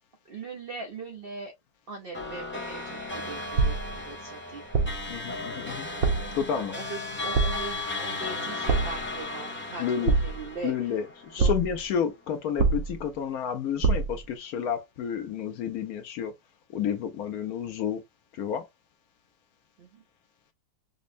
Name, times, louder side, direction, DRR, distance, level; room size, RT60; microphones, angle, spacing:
voice 1, 0.3-1.5 1.9-4.7 6.5-10.7 11.4-11.5 19.8-20.0, right 4 dB, 85° right, 0.5 m, -40 dB
sound 1, 2.1-11.8, left 2 dB, 10° left, 0.5 m, -36 dB
sound 2, 3.6-4.0 4.7-5.1 6.0-6.4 7.3-7.8 8.7-9.1 10.1-10.6 11.4-11.8 12.6-13.1 13.8-14.3, right 4 dB, 60° right, 1.0 m, -25 dB
voice 2, 5.1-5.9 6.3-6.7 9.8-10.1 10.6-16.3 16.7-18.0 18.3-18.7, left 8 dB, 70° left, 0.9 m, -30 dB
5.2 x 2.0 x 2.5 m
omnidirectional pair, 1.9 m